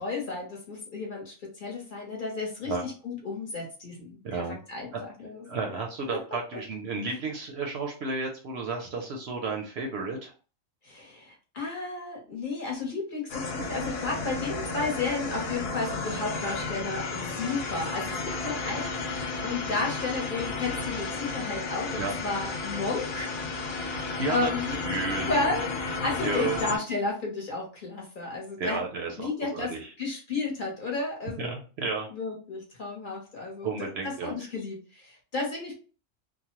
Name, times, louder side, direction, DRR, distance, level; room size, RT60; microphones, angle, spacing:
voice 1, 0.0-4.9 5.2-5.5 6.1-6.2 10.8-23.3 23.9-24.8 25.3-28.8 29.2-29.7 30.0-31.5 32.1-33.7 34.0-35.8, left 3 dB, 45° left, -1 dB, 0.9 m, -33 dB
voice 2, 4.2-4.6 4.9-5.1 5.5-10.3 22.0-22.1 24.2-25.5 26.2-26.7 28.6-29.9 31.4-32.1 33.6-34.3, right 4 dB, 65° right, 2 dB, 0.7 m, -32 dB
sound 1, 13.3-26.8, left 3 dB, 90° left, 1.1 m, -33 dB
3.0 x 2.1 x 2.9 m, 0.37 s
omnidirectional pair, 1.4 m